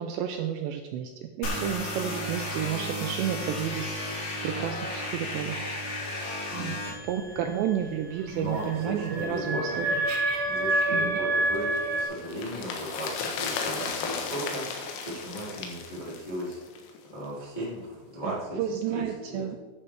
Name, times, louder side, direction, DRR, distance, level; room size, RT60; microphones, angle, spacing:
voice 1, 0.0-4.0 4.4-5.6 6.6-10.1 10.9-11.2 18.2-19.6, right 9 dB, 90° right, 5 dB, 2.5 m, -31 dB
sound 1, 1.4-6.9, left 1 dB, 60° left, 4.4 m, -33 dB
voice 2, 6.5-7.0 8.3-9.8 10.5-14.6 15.0-16.6 17.1-18.6 18.9-19.0 19.3-19.4, equal, 20° left, -7 dB, 1.1 m, -36 dB
sound 2, 6.8-12.1, right 2 dB, 70° right, 4.8 m, -29 dB
sound 3, 11.6-17.0 17.2-17.3, left 5 dB, 85° left, 3.8 m, -35 dB
11.0 x 9.6 x 3.4 m, 1.3 s
omnidirectional pair, 5.7 m